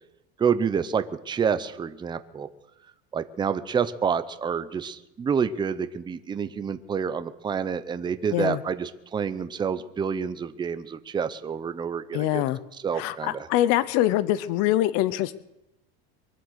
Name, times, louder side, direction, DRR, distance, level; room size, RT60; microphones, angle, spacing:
voice 1, 0.4-2.5 3.1-12.4 12.8-13.5, right 6 dB, 15° right, 11 dB, 0.7 m, -28 dB
voice 2, 12.1-12.6 13.0-15.3, left 14 dB, 55° left, 16 dB, 0.8 m, -24 dB
24.0 x 7.9 x 6.4 m, 0.90 s
supercardioid pair, 140°, 31 cm